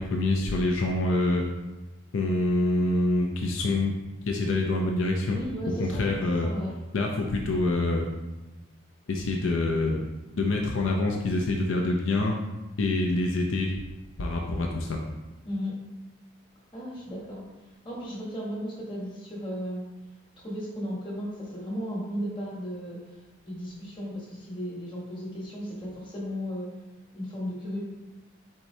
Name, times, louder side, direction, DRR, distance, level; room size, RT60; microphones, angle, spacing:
voice 1, 0.0-1.4 2.1-3.9 4.3-5.4 5.8-6.5 6.9-8.1 9.1-10.0 10.3-12.3 12.8-13.7 14.2-15.0, left 2 dB, 75° left, 0 dB, 0.5 m, -26 dB
voice 2, 5.3-6.1 6.4-6.7 15.4-15.7 16.7-17.4 17.8-19.8 20.4-23.0 23.4-26.7 27.1-27.8, equal, 25° left, -4 dB, 1.1 m, -35 dB
4.5 x 4.1 x 2.7 m, 1.1 s
head